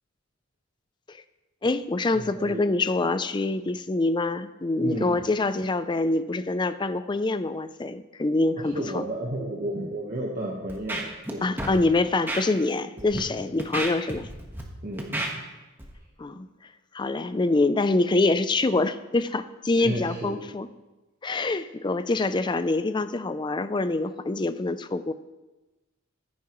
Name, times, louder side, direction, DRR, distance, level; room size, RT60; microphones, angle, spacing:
voice 1, 1.6-9.1 11.4-14.3 16.2-16.5 16.9-20.7 21.2-25.1, left 2 dB, 20° left, 12 dB, 0.4 m, -25 dB
voice 2, 2.1-2.8 4.8-5.1 8.6-11.5 13.0-13.5 14.8-15.4 19.7-20.4, right 1 dB, 40° right, -3 dB, 1.3 m, -33 dB
Scratching (performance technique), 10.7-11.3 11.6-11.8 12.3-12.4 13.0-13.2 13.6-14.6 15.0-15.3 15.8-15.9, right 1 dB, 10° right, 1.3 m, -31 dB
15.5 x 9.5 x 3.1 m, 1.1 s
head